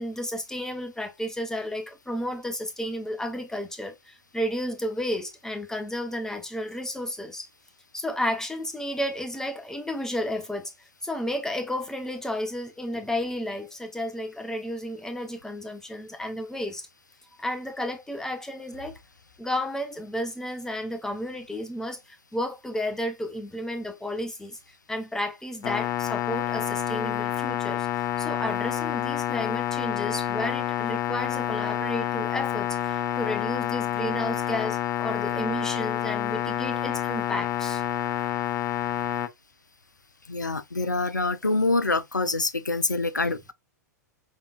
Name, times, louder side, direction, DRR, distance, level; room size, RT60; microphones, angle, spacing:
voice 1, 0.0-7.5 7.9-16.9 17.4-19.0 19.4-24.6 24.9-27.9 28.2-37.8, left 1 dB, 5° left, 1.0 m, -32 dB
sound 1, 25.6-39.3, left 12 dB, 35° left, 0.7 m, -28 dB
voice 2, 40.3-43.5, left 3 dB, 85° left, 0.5 m, -26 dB
5.8 x 3.5 x 2.4 m
figure-of-eight pair, 95°, 10 cm